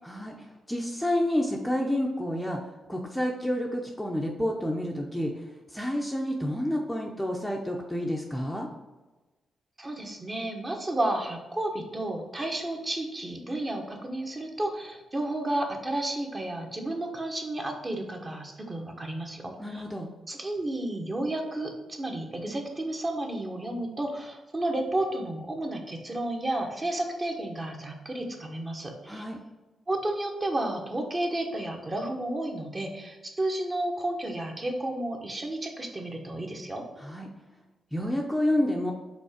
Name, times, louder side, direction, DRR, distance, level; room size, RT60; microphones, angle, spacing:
voice 1, 0.0-0.3 0.7-2.6 2.9-5.3 5.7-8.7 19.6-20.1 29.1-29.4 37.0-37.3 37.9-38.9, left 1 dB, 5° left, 0 dB, 0.7 m, -29 dB
voice 2, 9.8-19.8 20.3-29.2 29.9-36.8, right 1 dB, 25° right, 2 dB, 1.1 m, -32 dB
5.2 x 3.8 x 5.0 m, 1.1 s
cardioid pair, 100°, 0 cm